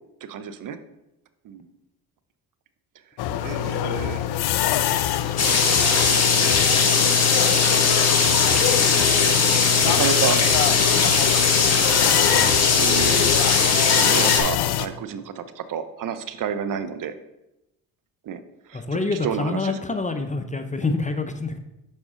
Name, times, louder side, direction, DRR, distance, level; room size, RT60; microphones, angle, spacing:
voice 1, 0.2-0.8 1.4-1.7 3.2-4.2 5.0-5.5 5.7-6.1 7.9-8.4 9.9-10.4 12.3-17.1 18.2-18.4 18.7-19.8, right 8 dB, 45° right, 11 dB, 0.6 m, -31 dB
sound 1, 3.2-14.9, left 12 dB, 60° left, 0.6 m, -25 dB
sound 2, 5.4-14.4, left 5 dB, 35° left, 1.3 m, -19 dB
voice 2, 18.7-21.6, left 3 dB, 15° left, 7 dB, 0.5 m, -26 dB
6.3 x 4.8 x 3.6 m, 0.91 s
hypercardioid pair, 60°, 44 cm